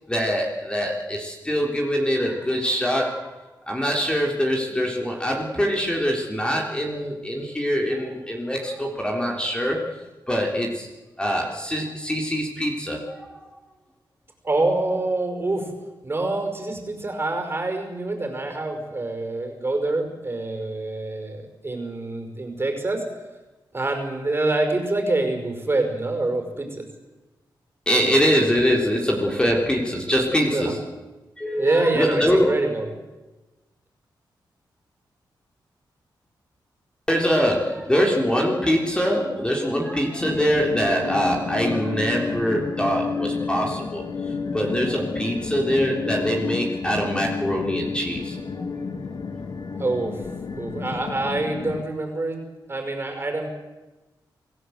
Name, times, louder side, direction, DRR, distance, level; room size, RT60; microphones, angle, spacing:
voice 1, 0.1-10.9 11.2-13.5 27.9-30.9 31.4-32.5 37.1-48.7, equal, 10° left, 0 dB, 3.6 m, -24 dB
voice 2, 14.4-15.7 16.0-23.0 23.7-26.9 30.5-30.7 31.5-32.9 49.8-50.2 50.6-52.4 52.7-53.5, right 2 dB, 30° right, 5 dB, 5.4 m, -26 dB
sound 1, 40.2-51.8, left 5 dB, 55° left, 1.9 m, -30 dB
26.0 x 16.5 x 8.0 m, 1.1 s
cardioid pair, 90°, 8 cm